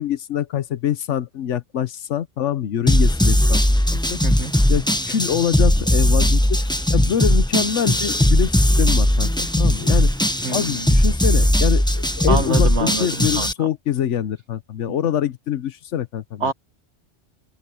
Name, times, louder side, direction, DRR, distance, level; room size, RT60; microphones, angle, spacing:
voice 1, 0.0-3.6 3.9-4.2 4.7-6.6 6.9-10.1 10.5-16.5, left 9 dB, 90° left, 1.2 m, -25 dB
sound 1, 2.9-13.5, left 1 dB, 5° left, 0.8 m, -18 dB
voice 2, 10.4-10.9 12.3-13.1 13.4-13.7 16.4-16.5, right 4 dB, 75° right, 2.0 m, -26 dB
open air
omnidirectional pair, 1.2 m